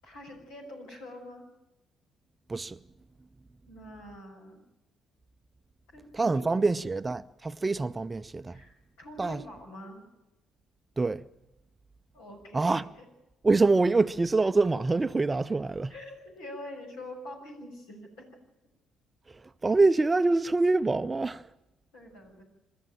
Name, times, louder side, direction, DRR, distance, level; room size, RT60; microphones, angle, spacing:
voice 1, 0.0-1.4 3.7-4.6 5.9-6.8 8.5-10.1 12.1-13.0 15.9-18.3 21.9-22.4, left 1 dB, 70° left, 6.5 m, -45 dB
voice 2, 6.1-8.6 9.2-9.4 11.0-11.3 12.5-12.9 13.4-15.9 19.6-21.4, right 3 dB, 25° right, 0.7 m, -25 dB
27.5 x 13.0 x 9.0 m
figure-of-eight pair, 45°, 0 cm